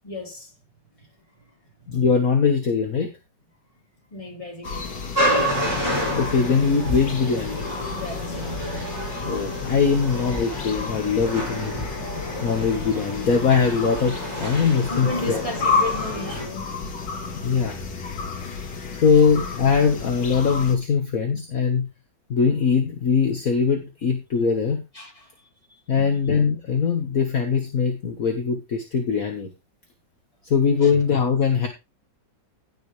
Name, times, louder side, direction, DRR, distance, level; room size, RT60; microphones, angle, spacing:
voice 1, 0.0-0.5 1.4-1.5 4.1-5.1 7.9-8.4 14.9-16.7 18.6-19.0 24.9-25.3 25.9-26.2 30.8-30.9, left 2 dB, 20° left, 3.3 m, -35 dB
voice 2, 1.9-3.1 6.1-7.6 9.3-11.9 12.4-15.4 17.4-17.8 19.0-21.9 22.3-24.8 25.9-29.5 30.4-31.7, left 5 dB, 50° left, 1.8 m, -21 dB
sound 1, 4.6-20.8, left 4 dB, 75° left, 2.5 m, -31 dB
sound 2, 5.1-16.4, equal, 10° right, 6.9 m, -29 dB
16.5 x 6.8 x 3.3 m
omnidirectional pair, 1.9 m